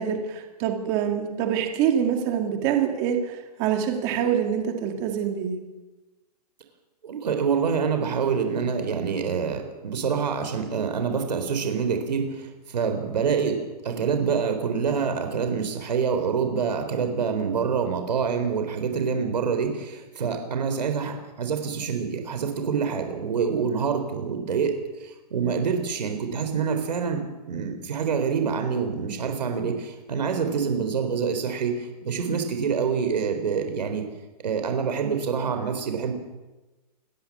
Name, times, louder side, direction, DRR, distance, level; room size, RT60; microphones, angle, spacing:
voice 1, 0.0-3.2 3.6-5.6, right 8 dB, 20° right, 4 dB, 2.2 m, -25 dB
voice 2, 7.0-34.1 34.4-36.1, right 6 dB, 85° right, 6 dB, 4.0 m, -26 dB
28.0 x 13.5 x 7.3 m, 1.1 s
hypercardioid pair, 180°, 21 cm